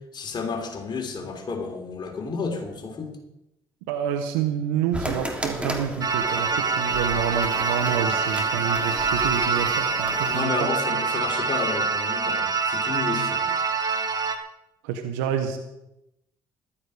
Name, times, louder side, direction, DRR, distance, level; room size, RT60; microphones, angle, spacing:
voice 1, 0.1-3.1 10.2-13.6, left 4 dB, 45° left, 3 dB, 3.4 m, -31 dB
voice 2, 3.9-10.7 14.8-15.6, right 8 dB, 90° right, 6 dB, 1.2 m, -28 dB
sound 1, 4.9-10.4, right 1 dB, 10° right, 3.2 m, -35 dB
sound 2, 6.0-14.4, right 5 dB, 40° right, 2.0 m, -25 dB
14.5 x 12.5 x 5.0 m, 0.87 s
supercardioid pair, 60°, 10 cm